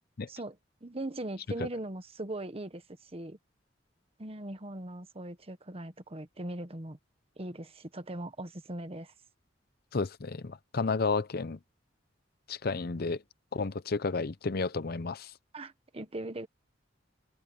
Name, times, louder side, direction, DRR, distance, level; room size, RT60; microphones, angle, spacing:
voice 1, 0.3-3.4 4.2-7.0 7.4-9.1 15.5-16.5, right 1 dB, 35° right, 1.3 m, -40 dB
voice 2, 9.9-11.6 12.5-13.2 13.5-15.3, left 4 dB, 55° left, 0.7 m, -32 dB
head